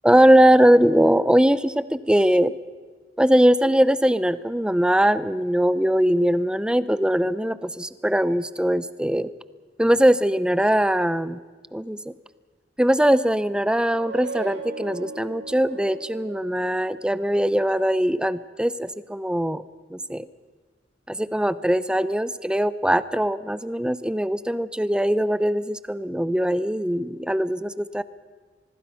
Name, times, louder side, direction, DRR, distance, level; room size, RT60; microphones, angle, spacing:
voice 1, 0.0-2.5 3.2-9.3 9.8-11.4 11.7-12.0 12.8-19.6 19.9-20.3 21.1-28.0, equal, 5° right, 15 dB, 0.6 m, -21 dB
cymbal resonance, 13.7-17.3, right 5 dB, 65° right, 1.9 m, -38 dB
25.0 x 20.5 x 5.7 m, 1.5 s
head